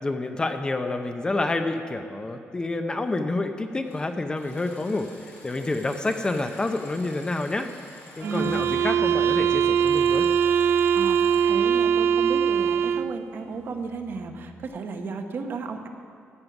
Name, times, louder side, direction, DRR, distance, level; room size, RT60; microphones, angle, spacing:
voice 1, 0.0-7.7 8.2-10.3, left 2 dB, 20° left, 7 dB, 0.6 m, -28 dB
sound 1, 3.8-4.0 4.3-8.9 9.7-11.5, left 2 dB, 55° left, 3.4 m, -48 dB
sound 2, 8.2-13.2, right 7 dB, 70° right, 0.4 m, -22 dB
Bass guitar, 8.4-13.2 13.5-14.7, right 1 dB, 25° right, 1.6 m, -45 dB
voice 2, 10.9-15.9, right 4 dB, 50° right, 5 dB, 1.0 m, -34 dB
14.0 x 9.5 x 6.0 m, 2.3 s
cardioid pair, 145°, 5 cm